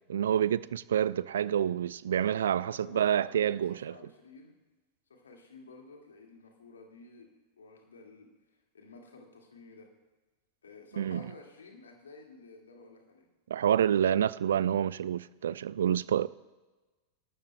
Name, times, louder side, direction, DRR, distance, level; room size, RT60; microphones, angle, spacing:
voice 1, 0.1-3.9 11.0-11.2 13.5-16.3, right 9 dB, 65° right, 0.3 m, -28 dB
voice 2, 2.6-4.6 5.1-8.3 8.7-9.9 10.6-13.3, left 3 dB, 70° left, 2.0 m, -52 dB
25.0 x 12.5 x 2.2 m
figure-of-eight pair, 90°, 0 cm